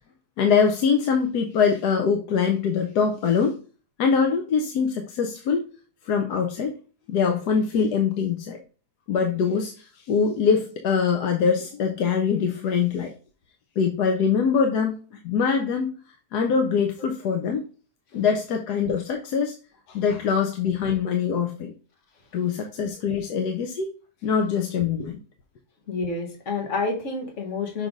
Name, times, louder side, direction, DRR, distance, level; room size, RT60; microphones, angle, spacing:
voice 1, 0.4-3.6 4.0-5.6 6.1-6.7 7.1-8.6 9.1-13.1 13.8-15.9 16.3-17.6 18.1-19.5 19.9-21.7 22.3-23.9 24.2-25.2, left 6 dB, 80° left, 4 dB, 1.3 m, -23 dB
voice 2, 25.9-27.9, left 4 dB, 50° left, 1 dB, 1.8 m, -28 dB
6.2 x 3.3 x 5.1 m, 0.36 s
omnidirectional pair, 1.7 m